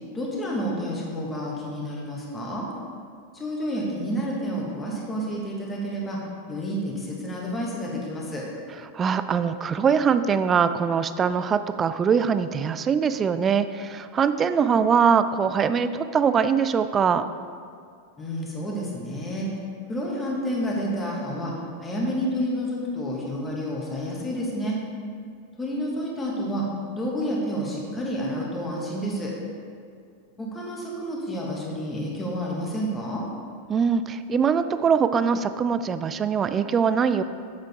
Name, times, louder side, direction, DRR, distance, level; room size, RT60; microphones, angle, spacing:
voice 1, 0.1-2.7 3.3-6.2 6.5-8.4 18.2-19.5 19.9-21.5 21.8-24.8 25.6-26.7 26.9-29.3 30.4-33.2, equal, 15° left, -3 dB, 1.8 m, -29 dB
voice 2, 8.9-17.3 33.7-37.2, right 6 dB, 25° right, 12 dB, 0.3 m, -22 dB
8.1 x 7.4 x 3.6 m, 2.3 s
figure-of-eight pair, 90°, 0 cm